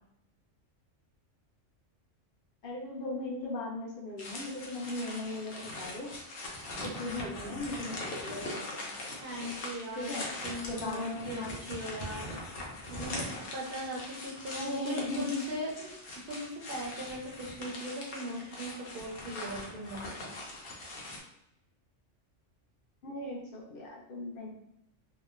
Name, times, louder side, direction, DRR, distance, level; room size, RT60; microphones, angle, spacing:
voice 1, 2.6-6.1 6.8-8.9 9.9-10.2 10.7-11.6 14.5-15.4 15.8-15.9 23.0-24.5, left 2 dB, 55° left, -2 dB, 0.6 m, -38 dB
sound 1, 4.2-21.2, left 2 dB, 90° left, 1.0 m, -41 dB
voice 2, 9.2-12.3 12.9-13.3 13.5-15.7 16.3-20.4, equal, 60° right, -4 dB, 0.6 m, -39 dB
2.9 x 2.1 x 2.3 m, 0.78 s
omnidirectional pair, 1.3 m